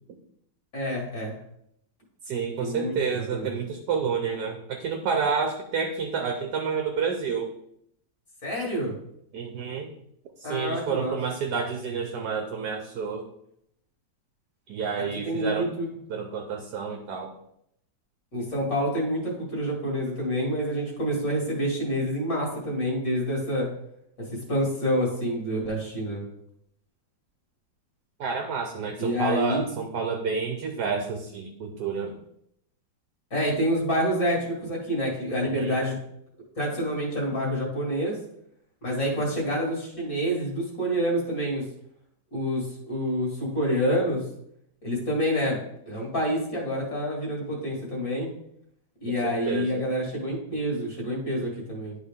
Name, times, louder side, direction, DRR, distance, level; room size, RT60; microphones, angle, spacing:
voice 1, 0.7-1.4 2.6-3.0 3.3-3.5 8.4-9.0 10.4-11.2 15.2-15.9 18.3-23.7 24.5-26.2 29.0-29.7 33.3-35.9 36.6-38.2 38.8-41.6 42.3-44.2 44.8-45.6 45.9-48.3 49.0-52.0, equal, 50° left, -2 dB, 2.4 m, -27 dB
voice 2, 2.3-7.5 9.3-9.9 10.4-13.3 14.7-15.7 16.1-17.3 28.2-32.2 35.4-35.8 49.1-49.9, right 5 dB, 70° right, 4 dB, 1.3 m, -29 dB
11.0 x 4.1 x 3.6 m, 0.74 s
omnidirectional pair, 1.9 m